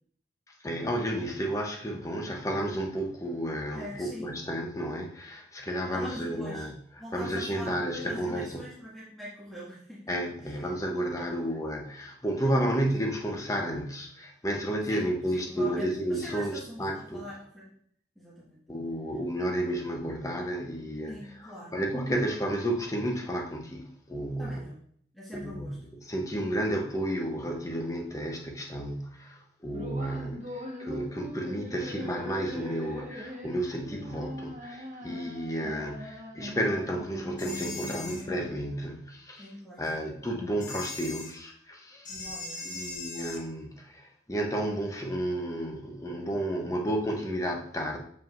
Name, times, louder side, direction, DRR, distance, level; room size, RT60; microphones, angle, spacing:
voice 1, 0.6-6.7 7.1-8.6 10.1-17.2 18.7-24.6 25.3-39.5 39.8-42.1 42.6-48.0, right 1 dB, 20° left, 0.9 m, -32 dB
voice 2, 3.7-4.3 5.9-6.7 7.0-10.7 11.2-11.5 12.6-12.9 14.9-17.7 18.2-18.6 21.1-21.7 24.4-24.8 25.1-25.8 39.4-39.9 42.1-42.8, equal, ahead, 1.8 m, -43 dB
sound 1, 29.7-38.7, left 1 dB, 40° right, 1.3 m, -41 dB
sound 2, 37.4-38.2 40.6-41.3 42.0-43.4, left 3 dB, 45° left, 1.4 m, -39 dB
7.2 x 5.4 x 2.6 m
head